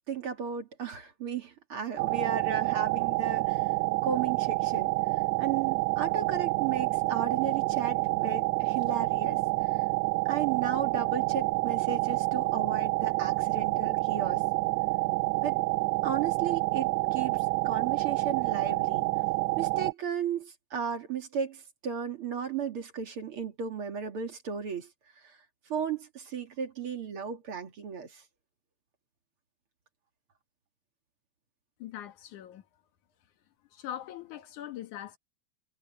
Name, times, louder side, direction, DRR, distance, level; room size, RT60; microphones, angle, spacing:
voice 1, 0.1-3.7 4.0-9.8 10.2-14.4 15.4-15.5 16.0-19.1 19.6-24.9 25.2-25.4 25.7-28.2, right 7 dB, 50° right, 2.6 m, -35 dB
sound 1, 2.0-19.9, right 22 dB, 75° right, 1.6 m, -28 dB
voice 2, 31.8-32.7 33.7-35.2, left 11 dB, 80° left, 2.9 m, -41 dB
omnidirectional pair, 3.4 m